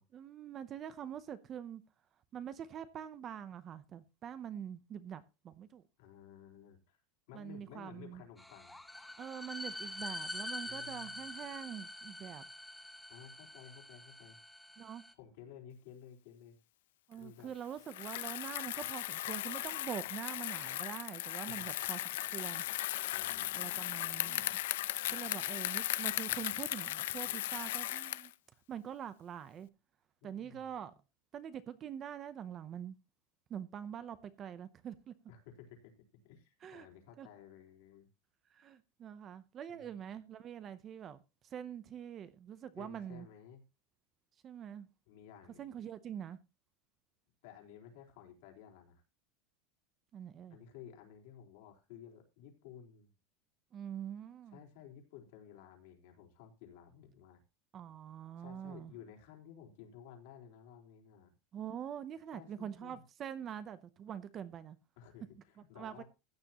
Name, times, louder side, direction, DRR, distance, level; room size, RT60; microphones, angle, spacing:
voice 1, 0.1-1.8 2.3-5.8 7.3-8.2 9.2-12.5 14.8-15.0 17.1-22.0 22.3-22.7 23.3-24.6 25.1-28.3 28.7-29.7 30.2-30.9 31.3-33.0 33.5-35.1 36.6-36.9 37.2-37.3 38.5-41.2 41.4-43.3 44.4-44.9 45.6-46.4 50.1-50.6 53.7-54.6 57.7-58.9 61.5-64.8 65.8-66.0, right 9 dB, 25° right, 0.7 m, -44 dB
voice 2, 6.0-7.0 7.3-8.8 10.6-11.3 13.1-14.4 15.2-16.6 17.2-17.5 21.5-21.6 23.1-24.6 30.2-30.7 35.3-35.9 36.2-38.1 39.7-40.0 42.8-43.6 45.1-45.7 47.4-49.0 50.5-53.1 54.5-57.4 58.4-61.3 62.3-63.0 65.0-66.0, left 8 dB, 60° left, 3.8 m, -55 dB
sound 1, 8.4-15.1, left 1 dB, 5° left, 0.8 m, -45 dB
Bicycle, 17.8-28.3, left 15 dB, 80° left, 0.6 m, -37 dB
15.0 x 9.6 x 2.9 m
supercardioid pair, 175°, 0 cm